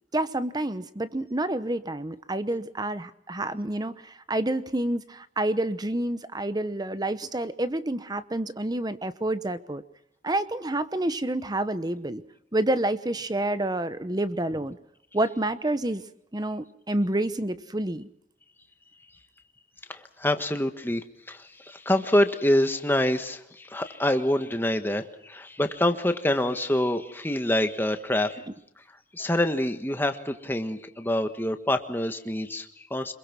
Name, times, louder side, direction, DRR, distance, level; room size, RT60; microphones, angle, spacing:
voice 1, 0.1-9.8 10.2-12.2 12.5-14.8 15.1-16.0 16.3-18.1 29.2-29.3, right 1 dB, 20° right, 13 dB, 0.9 m, -28 dB
voice 2, 19.9-28.4 29.1-33.1, left 1 dB, 10° left, 7 dB, 1.5 m, -26 dB
26.5 x 22.5 x 6.1 m, 0.80 s
head